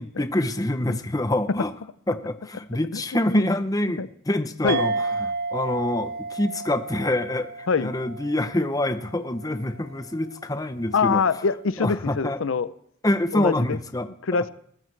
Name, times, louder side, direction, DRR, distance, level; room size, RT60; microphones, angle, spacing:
voice 1, 0.0-1.7 2.1-11.2 11.8-12.4 13.0-14.1, left 1 dB, 20° left, 10 dB, 0.7 m, -26 dB
voice 2, 2.9-3.5 4.0-4.1 4.6-4.8 7.7-7.9 10.9-12.7 13.3-13.8 14.2-14.5, left 5 dB, 90° left, 15 dB, 0.6 m, -24 dB
sound 1, 4.7-9.6, right 3 dB, 50° right, 0.5 m, -32 dB
21.0 x 14.5 x 3.3 m, 0.67 s
head